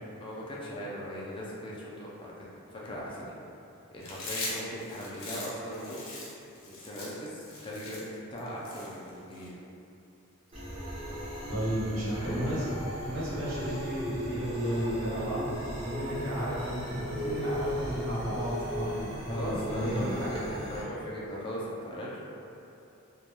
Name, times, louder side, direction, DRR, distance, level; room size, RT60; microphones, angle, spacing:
voice 1, 0.2-3.3 3.9-6.1 6.6-9.6 11.9-12.4 19.3-22.2, equal, 25° left, -5 dB, 0.3 m, -39 dB
Chewing mastication, 4.0-9.5, left 2 dB, 70° left, 0.6 m, -40 dB
sound 1, 10.5-20.8, equal, 25° right, 0.7 m, -37 dB
voice 2, 11.5-20.3, equal, 75° right, -10 dB, 0.9 m, -33 dB
2.3 x 2.2 x 2.9 m, 2.7 s
head